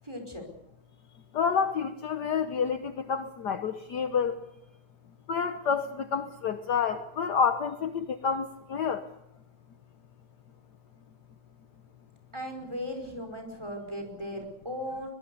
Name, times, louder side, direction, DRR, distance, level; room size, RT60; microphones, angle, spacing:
voice 1, 0.0-0.5 12.3-15.1, equal, 10° right, 4 dB, 4.8 m, -37 dB
voice 2, 1.3-4.4 5.3-9.1, left 6 dB, 60° left, 8 dB, 1.4 m, -29 dB
23.0 x 21.5 x 6.9 m, 0.85 s
omnidirectional pair, 2.3 m